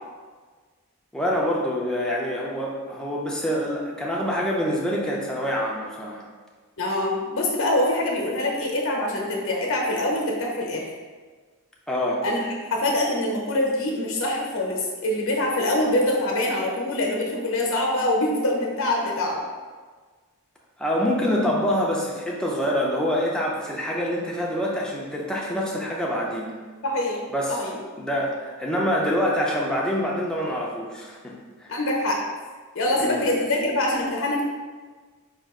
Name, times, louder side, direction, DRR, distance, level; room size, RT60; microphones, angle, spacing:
voice 1, 1.1-6.2 11.9-12.2 20.8-26.5 27.3-27.6 28.0-31.3 31.6-31.8 33.0-33.3, equal, 5° left, -4 dB, 0.6 m, -26 dB
voice 2, 6.8-10.8 12.2-19.4 26.8-27.2 27.5-27.8 31.7-32.2 32.7-34.4, left 1 dB, 60° left, -1 dB, 0.9 m, -24 dB
5.1 x 2.5 x 3.7 m, 1.4 s
head